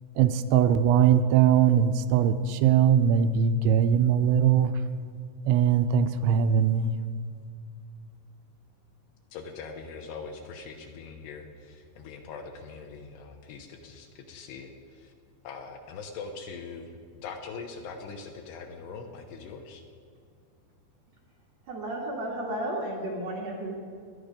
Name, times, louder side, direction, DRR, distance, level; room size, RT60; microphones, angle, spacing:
voice 1, 0.2-4.7 5.5-6.9, right 8 dB, 85° right, 10 dB, 2.9 m, -21 dB
voice 2, 9.3-15.1 15.4-19.8, left 5 dB, 75° left, 4 dB, 2.9 m, -42 dB
voice 3, 21.7-23.7, right 1 dB, 50° right, -3 dB, 2.1 m, -33 dB
19.5 x 11.0 x 5.2 m, 2.3 s
omnidirectional pair, 5.5 m